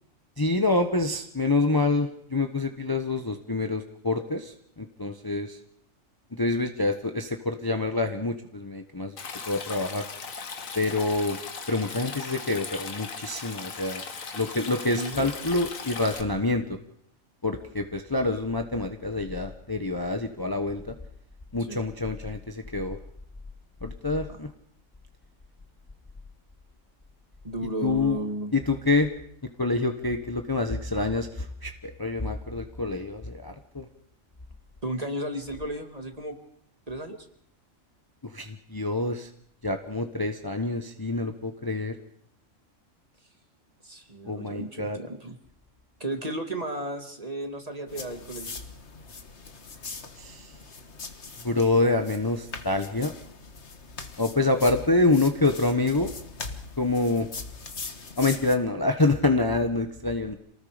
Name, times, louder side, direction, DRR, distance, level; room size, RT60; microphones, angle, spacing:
voice 1, 0.4-5.6 6.3-9.2 9.5-10.0 10.7-11.4 11.7-14.0 14.3-16.8 17.4-20.9 21.5-23.0 23.8-24.5 27.8-28.2 28.5-29.1 29.6-33.9 38.2-39.3 39.6-41.9 44.2-45.0 50.2-50.5 51.4-53.1 54.2-56.1 56.8-57.3 58.2-60.4, left 2 dB, 20° left, 6 dB, 1.1 m, -26 dB
Stream, 9.2-16.2, left 5 dB, 90° left, 2.0 m, -38 dB
voice 2, 14.9-15.3 21.7-21.8 27.4-28.5 34.8-36.4 36.9-37.2 43.8-45.4 46.0-48.5, right 1 dB, 30° right, 5 dB, 2.4 m, -33 dB
sound 1, 47.9-58.6, left 4 dB, 55° left, 1.8 m, -41 dB
27.5 x 19.0 x 5.1 m, 0.69 s
omnidirectional pair, 1.4 m